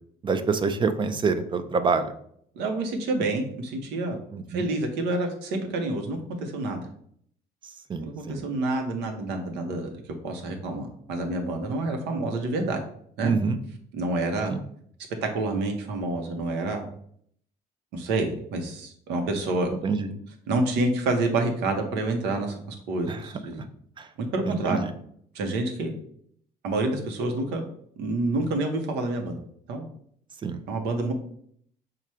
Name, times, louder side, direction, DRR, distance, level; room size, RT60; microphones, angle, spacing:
voice 1, 0.2-2.1 4.3-4.6 7.9-8.4 13.2-13.6 14.5-14.6 19.8-20.1 23.1-23.2 24.0-24.1 24.5-24.9 30.4-30.6, right 4 dB, 30° right, 10 dB, 0.5 m, -26 dB
voice 2, 2.6-4.2 4.5-6.8 8.0-9.9 10.2-12.8 13.2-13.3 13.9-14.5 15.2-16.8 17.9-19.7 20.5-22.6 22.9-23.6 24.3-24.8 25.3-25.9 26.6-27.6 28.0-29.4 29.7-29.8 30.7-31.1, right 2 dB, 85° right, 4 dB, 1.0 m, -28 dB
4.8 x 2.4 x 4.3 m, 0.65 s
cardioid pair, 110°, 17 cm